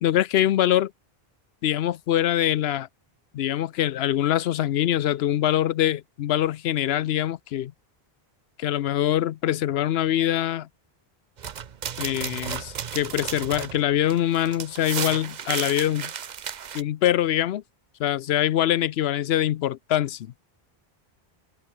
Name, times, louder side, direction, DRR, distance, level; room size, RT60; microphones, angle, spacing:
voice 1, 0.0-0.9 1.6-2.9 3.3-7.7 8.6-10.7 12.0-16.1 16.7-17.6 18.0-20.3, left 12 dB, 85° left, 0.8 m, -24 dB
sound 1, 11.4-16.8, right 8 dB, 50° right, 0.8 m, -34 dB
omnidirectional pair, 1.0 m